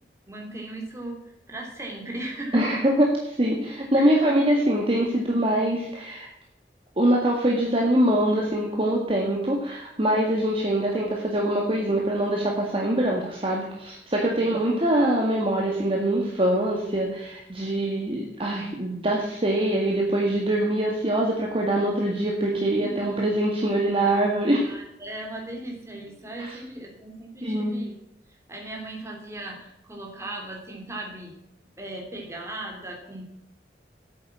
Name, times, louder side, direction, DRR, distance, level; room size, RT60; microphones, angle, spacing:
voice 1, 0.3-1.2 1.5-2.8 3.9-4.2 14.3-14.6 22.8-23.1 24.7-27.9 28.3-31.3 31.8-33.2, right 1 dB, 15° right, 1 dB, 3.1 m, -37 dB
voice 2, 2.5-6.3 7.0-24.7 26.4-26.6 27.4-27.8, right 1 dB, 30° right, -2 dB, 1.9 m, -24 dB
9.4 x 8.4 x 7.4 m, 0.83 s
head